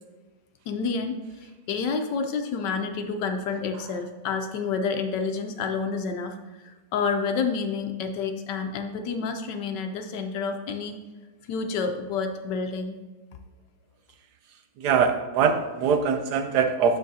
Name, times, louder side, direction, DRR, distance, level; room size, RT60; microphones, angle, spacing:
voice 1, 0.7-6.6 6.9-11.0 11.5-13.0, left 5 dB, 75° left, 6 dB, 1.2 m, -29 dB
voice 2, 14.8-17.0, right 6 dB, 75° right, 7 dB, 1.0 m, -22 dB
8.7 x 6.5 x 2.7 m, 1.2 s
omnidirectional pair, 2.0 m